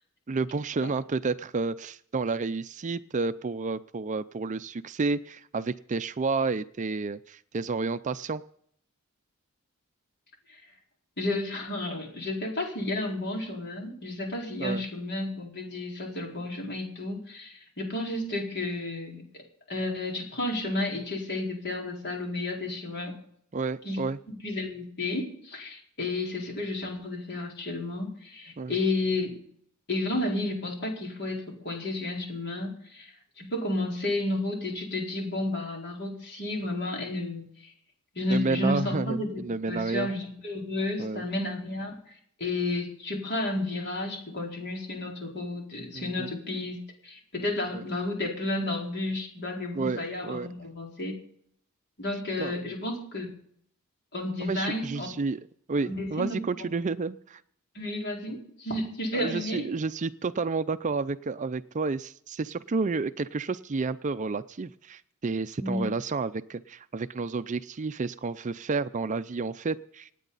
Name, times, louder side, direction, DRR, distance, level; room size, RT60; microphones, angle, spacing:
voice 1, 0.3-8.4 14.6-14.8 23.5-24.2 28.6-28.7 38.3-40.1 41.0-41.2 45.9-46.3 47.7-47.8 49.7-50.5 52.4-52.5 54.4-55.4 55.7-57.4 59.1-70.1, right 4 dB, 35° right, 13 dB, 0.4 m, -30 dB
voice 2, 11.2-19.2 19.7-23.1 23.8-24.0 24.3-29.4 29.9-37.4 38.1-39.4 39.7-46.8 47.0-51.2 52.0-53.3 54.1-55.1 55.9-56.7 57.7-59.6 65.6-65.9, left 2 dB, 50° left, 0 dB, 4.4 m, -32 dB
26.5 x 9.3 x 4.0 m, 0.67 s
head